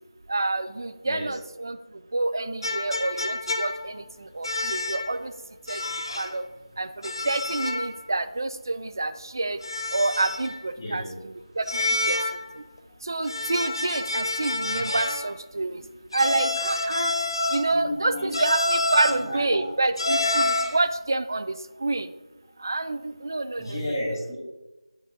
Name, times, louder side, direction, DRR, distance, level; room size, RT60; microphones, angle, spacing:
voice 1, 0.3-1.8 2.1-3.9 4.4-5.3 5.7-5.8 6.2-6.4 6.8-6.9 7.3-9.6 9.9-11.0 11.6-12.2 13.1-15.8 16.1-17.1 17.5-21.5 21.8-22.1 22.6-23.9, right 2 dB, 35° right, 13 dB, 0.3 m, -27 dB
voice 2, 1.0-1.4 10.8-11.2 14.7-14.8 17.7-18.3 18.9-19.7 23.6-24.3, left 1 dB, 15° left, -14 dB, 1.9 m, -32 dB
sound 1, 2.6-4.0 4.4-5.2 5.7-6.4 7.0-8.0 8.2-8.3 9.6-10.6 11.7-12.5 13.2-15.3 16.1-17.8 18.3-19.3 20.0-20.8, left 2 dB, 50° left, 0.7 m, -28 dB
9.7 x 5.4 x 2.6 m, 1.1 s
figure-of-eight pair, 175°, 3 cm